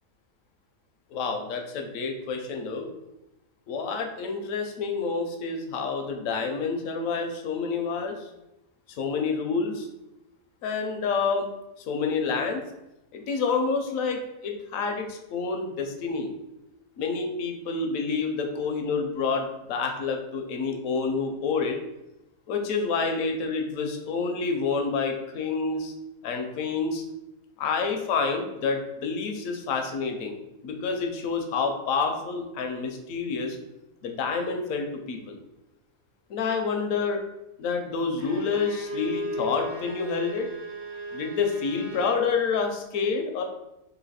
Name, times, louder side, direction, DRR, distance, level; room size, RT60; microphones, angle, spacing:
voice 1, 1.1-2.9 3.7-8.3 9.0-9.9 10.6-11.5 11.9-12.6 13.1-16.3 17.0-21.8 22.5-25.9 26.2-27.0 27.6-30.4 30.6-33.6 34.0-35.4 36.3-37.2 37.6-40.5 41.1-43.4, left 4 dB, 70° left, 4 dB, 0.9 m, -28 dB
Bowed string instrument, 38.2-42.3, equal, 40° right, 0.3 m, -36 dB
3.1 x 2.7 x 4.1 m, 0.92 s
omnidirectional pair, 1.6 m